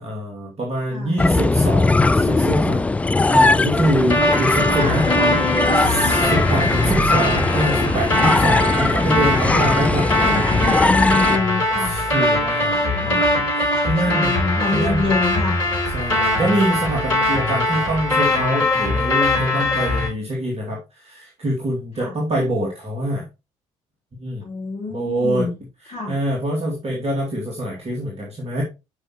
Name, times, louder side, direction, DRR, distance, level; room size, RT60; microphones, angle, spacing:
voice 1, 0.0-2.9 3.3-5.1 5.8-10.1 11.8-14.4 14.7-15.1 15.9-23.2 24.2-24.5 24.9-25.5 26.1-28.6, right 1 dB, 35° right, -1 dB, 2.4 m, -24 dB
sound 1, 1.2-11.4, left 3 dB, 10° left, 0.3 m, -19 dB
sound 2, 4.1-20.1, left 1 dB, 75° left, 3.5 m, -21 dB
voice 2, 4.8-6.2 6.5-6.8 9.9-11.9 12.8-13.3 13.8-15.6 21.9-22.1 24.4-25.5 25.9-26.2, left 3 dB, 35° left, -6 dB, 3.8 m, -26 dB
8.7 x 5.6 x 3.1 m, 0.26 s
figure-of-eight pair, 55°, 18 cm